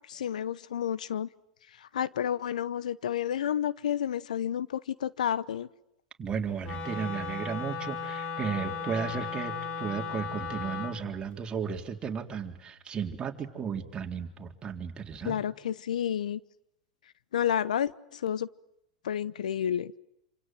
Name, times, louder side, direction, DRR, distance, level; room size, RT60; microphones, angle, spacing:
voice 1, 0.1-1.3 1.8-5.7 15.2-16.4 17.3-18.5 19.0-19.9, left 9 dB, 75° left, 1.0 m, -30 dB
voice 2, 6.2-15.4, right 6 dB, 25° right, 4.0 m, -34 dB
Wind instrument woodwind instrument, 6.6-11.0, left 5 dB, 35° left, 5.5 m, -36 dB
28.0 x 27.0 x 7.8 m
hypercardioid pair, 100°, 4 cm